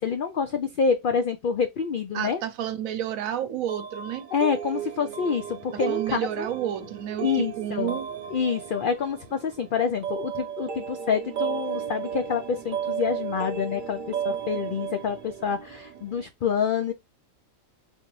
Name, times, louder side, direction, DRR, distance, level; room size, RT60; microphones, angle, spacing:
voice 1, 0.0-2.4 4.3-6.5 7.2-8.0 8.3-16.9, left 6 dB, 85° left, 0.4 m, -27 dB
voice 2, 2.1-4.3 5.7-8.1, right 11 dB, 80° right, 1.0 m, -31 dB
sound 1, 3.7-16.3, right 8 dB, 50° right, 0.6 m, -34 dB
3.8 x 2.5 x 3.1 m
omnidirectional pair, 1.4 m